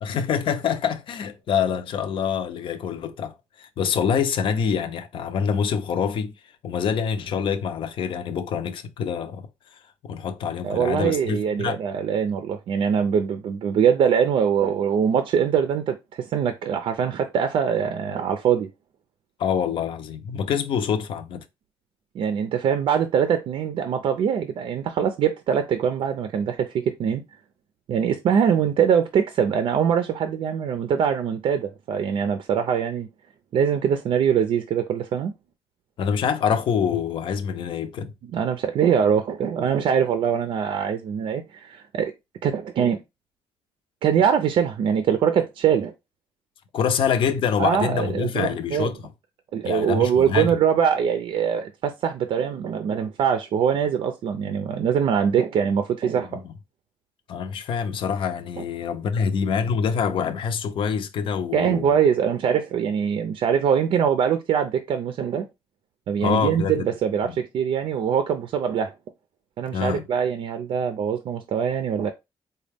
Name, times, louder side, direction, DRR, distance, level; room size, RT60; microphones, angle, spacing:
voice 1, 0.0-6.3 6.6-9.5 10.0-11.8 19.4-21.4 36.0-38.1 46.7-49.0 49.6-50.6 56.3-56.5 57.3-62.0 66.2-66.9 67.2-67.4 69.7-70.0, left 7 dB, 65° left, 0.6 m, -25 dB
voice 2, 10.6-18.7 22.1-27.2 27.9-33.1 33.5-35.3 38.3-42.1 42.4-43.0 44.0-45.9 47.6-48.9 49.5-56.4 61.5-65.5 66.1-68.9 69.6-72.1, right 8 dB, 70° right, 0.4 m, -23 dB
4.0 x 2.2 x 3.4 m
cardioid pair, 105°, 9 cm